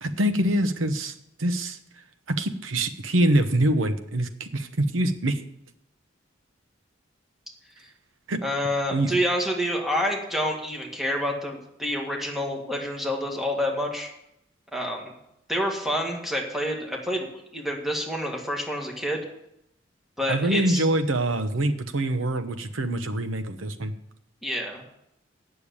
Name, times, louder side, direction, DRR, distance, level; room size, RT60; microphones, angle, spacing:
voice 1, 0.0-1.8 2.3-5.4 8.3-8.4 8.9-9.2 20.3-23.9, right 1 dB, 85° right, 9 dB, 0.9 m, -25 dB
voice 2, 8.4-14.1 14.7-15.1 15.5-19.3 20.2-20.9 24.4-24.8, equal, ahead, 0 dB, 1.8 m, -28 dB
8.8 x 6.8 x 8.3 m, 0.79 s
head